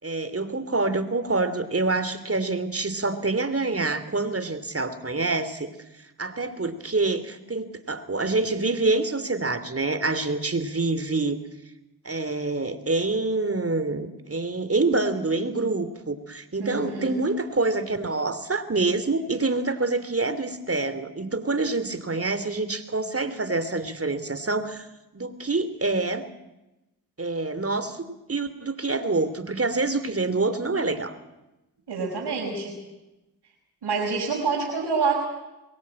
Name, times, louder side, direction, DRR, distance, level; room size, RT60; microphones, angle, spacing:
voice 1, 0.0-5.7 6.2-11.4 12.0-24.9 25.1-26.2 27.2-31.1, right 3 dB, 35° right, 12 dB, 2.9 m, -26 dB
voice 2, 16.6-17.1 31.9-32.7 33.8-35.1, right 4 dB, 80° right, -2 dB, 5.5 m, -27 dB
23.0 x 17.0 x 8.8 m, 0.98 s
supercardioid pair, 40°, 40 cm